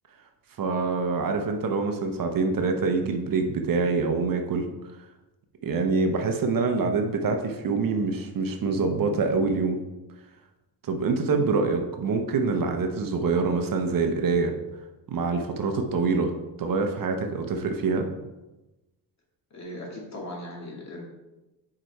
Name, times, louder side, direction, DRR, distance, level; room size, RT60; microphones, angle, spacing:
voice 1, 0.6-4.7 5.6-9.8 10.8-14.5 15.1-16.3 16.6-18.1, right 4 dB, 55° right, 5 dB, 0.8 m, -25 dB
voice 2, 19.5-21.0, left 1 dB, 40° left, -2 dB, 2.0 m, -38 dB
4.9 x 4.8 x 4.5 m, 1.0 s
cardioid pair, 110°, 41 cm